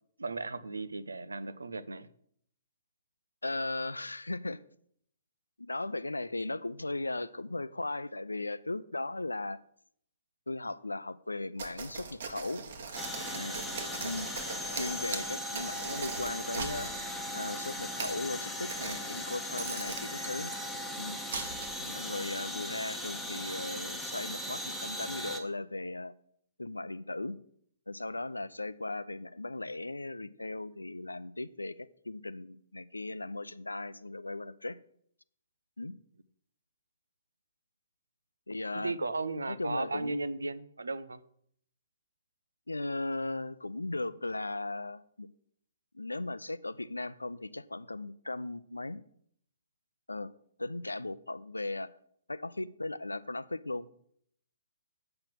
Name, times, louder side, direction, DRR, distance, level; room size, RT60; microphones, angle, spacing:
voice 1, 0.2-2.1 13.3-13.6 21.8-22.0 38.7-41.2, right 3 dB, 75° right, 13 dB, 0.6 m, -36 dB
voice 2, 3.4-4.6 5.6-9.6 10.5-12.7 14.0-14.3 14.8-16.9 17.3-20.5 21.0-21.2 21.9-26.1 26.6-27.4 27.9-34.8 35.8-35.9 38.5-38.9 39.5-40.2 42.7-45.3 45.9-49.0 50.1-50.3 50.6-51.9 52.3-53.9, left 2 dB, 85° left, 17 dB, 0.5 m, -37 dB
sound 1, 11.6-17.1 17.8-18.2 18.7-19.2 19.6-20.6 21.3-21.9, right 4 dB, 55° right, 1.6 m, -40 dB
sound 2, 13.0-25.4, left 1 dB, ahead, 1.2 m, -38 dB
7.8 x 5.8 x 7.4 m, 0.67 s
figure-of-eight pair, 125°, 0 cm